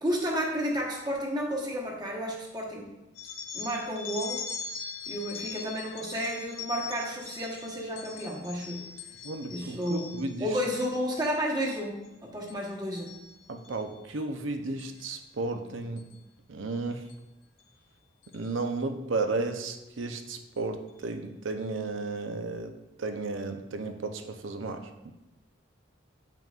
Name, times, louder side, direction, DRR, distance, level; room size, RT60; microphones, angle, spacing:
voice 1, 0.0-2.9 3.5-4.5 5.1-8.8 9.5-13.1, equal, 20° right, -2 dB, 1.1 m, -32 dB
sound 1, 3.2-10.5 10.9-11.3 11.6-12.1 12.5-13.8 14.8-15.0 16.0-16.1 17.1-17.2 17.6-17.7 18.2-18.5, left 6 dB, 85° left, 0.8 m, -41 dB
voice 2, 9.2-10.5 13.5-16.0 16.5-17.1 18.3-25.1, right 3 dB, 80° right, 6 dB, 0.7 m, -34 dB
9.0 x 5.8 x 2.4 m, 0.95 s
head